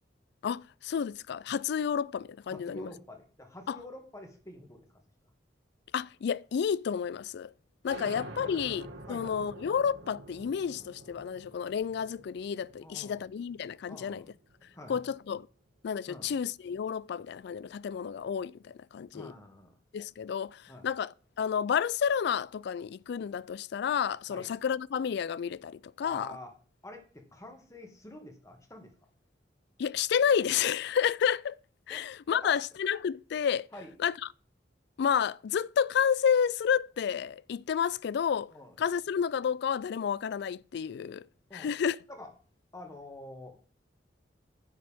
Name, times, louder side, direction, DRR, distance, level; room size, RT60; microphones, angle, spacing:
voice 1, 0.4-2.9 3.7-3.8 5.9-7.5 7.8-14.2 14.9-15.5 15.8-19.3 19.9-26.4 29.8-31.6 31.9-33.7 34.0-34.1 35.0-38.5 38.8-41.2 41.5-42.0, left 7 dB, 65° left, 0.3 m, -30 dB
voice 2, 2.5-4.9 8.0-8.1 8.4-8.5 9.1-9.4 12.8-13.3 13.9-14.3 14.7-15.0 16.1-16.3 19.1-19.8 20.7-20.9 24.3-24.5 26.0-26.5 26.8-28.9 31.9-32.0 32.3-32.6 33.7-33.9 38.5-38.7 41.5-41.7 42.1-42.3 42.7-43.6, left 1 dB, 15° left, 1.9 m, -47 dB
sound 1, 7.9-15.1, right 2 dB, 75° right, 1.9 m, -48 dB
10.0 x 9.4 x 3.6 m
head